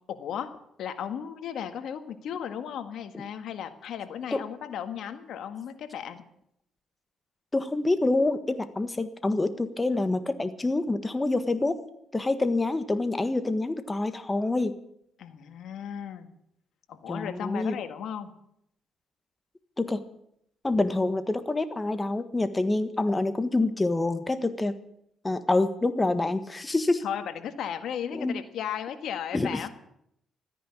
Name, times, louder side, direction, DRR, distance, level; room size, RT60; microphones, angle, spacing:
voice 1, 0.1-0.5 0.8-6.2 15.2-16.3 16.9-18.3 27.0-29.7, left 8 dB, 75° left, 8 dB, 1.7 m, -35 dB
voice 2, 7.5-11.8 12.1-14.8 17.1-17.8 19.8-20.0 20.6-24.8 25.2-27.1 28.1-28.4 29.3-29.6, left 2 dB, 20° left, 10 dB, 1.5 m, -27 dB
14.0 x 10.0 x 9.9 m, 0.74 s
cardioid pair, 90°, 0 cm